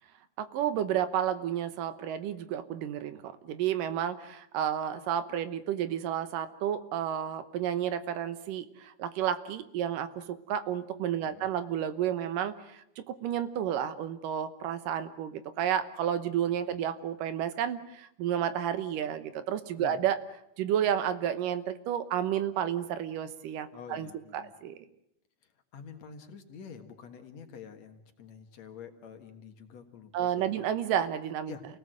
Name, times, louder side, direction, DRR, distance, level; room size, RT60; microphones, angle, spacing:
voice 1, 0.4-20.2 20.6-24.8 30.1-31.5, right 10 dB, 85° right, 12 dB, 2.7 m, -31 dB
voice 2, 23.7-24.5 25.7-30.6 31.5-31.6, left 6 dB, 60° left, 6 dB, 2.7 m, -47 dB
29.0 x 18.0 x 7.8 m, 0.78 s
omnidirectional pair, 3.7 m